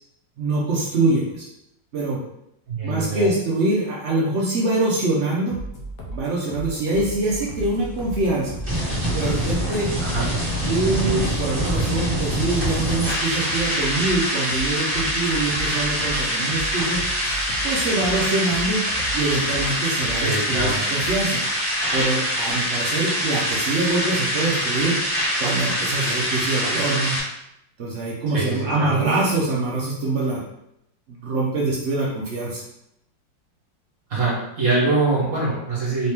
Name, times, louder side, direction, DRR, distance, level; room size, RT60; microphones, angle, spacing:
voice 1, 0.4-1.5 1.9-2.2 2.8-5.6 6.1-8.6 9.1-9.9 10.7-17.0 17.6-18.8 19.1-21.4 21.9-25.0 25.4-27.2 27.8-30.4 31.1-32.6, right 2 dB, 80° right, -5 dB, 0.6 m, -24 dB
voice 2, 2.7-3.3 10.0-10.3 20.2-20.8 28.3-29.0 34.1-36.1, right 3 dB, 50° right, -6 dB, 1.5 m, -24 dB
sound 1, 5.5-21.5, right 1 dB, 60° left, 1.0 m, -36 dB
sound 2, 7.5-27.2, equal, 15° right, 1.2 m, -25 dB
4.1 x 2.8 x 3.5 m, 0.81 s
omnidirectional pair, 2.1 m